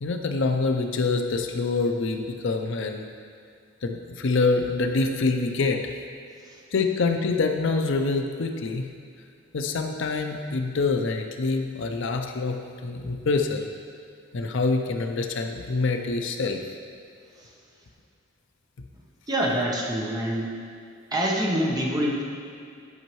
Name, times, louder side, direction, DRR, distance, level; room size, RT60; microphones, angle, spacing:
voice 1, 0.0-3.1 3.8-5.9 6.7-8.8 9.5-12.6 12.8-13.7 14.3-16.6, left 3 dB, 65° left, 4 dB, 0.5 m, -25 dB
voice 2, 19.3-20.5 21.1-22.2, equal, 20° right, -2 dB, 0.9 m, -25 dB
10.5 x 5.4 x 3.1 m, 2.3 s
head